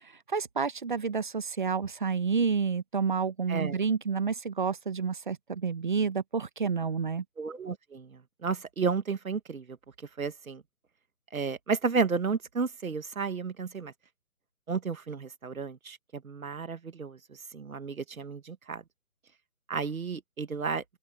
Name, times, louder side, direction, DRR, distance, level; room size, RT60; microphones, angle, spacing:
voice 1, 0.0-7.2, right 5 dB, 35° right, 1.2 m, -29 dB
voice 2, 3.5-3.8 7.4-9.8 10.2-10.6 11.3-13.9 14.7-18.8 19.7-20.8, right 5 dB, 70° right, 2.0 m, -32 dB
open air
hypercardioid pair, 170°, 44 cm